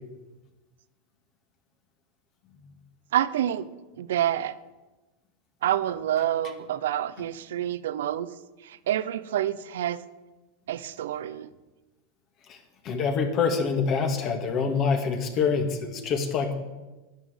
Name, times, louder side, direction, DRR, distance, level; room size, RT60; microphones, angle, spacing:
voice 1, 3.1-3.7 4.0-4.6 5.6-8.3 8.6-10.0 10.7-11.5, right 11 dB, 85° right, 16 dB, 0.7 m, -27 dB
voice 2, 12.8-16.6, left 5 dB, 40° left, 5 dB, 2.2 m, -25 dB
10.5 x 10.0 x 8.1 m, 1.1 s
supercardioid pair, 125°, 0 cm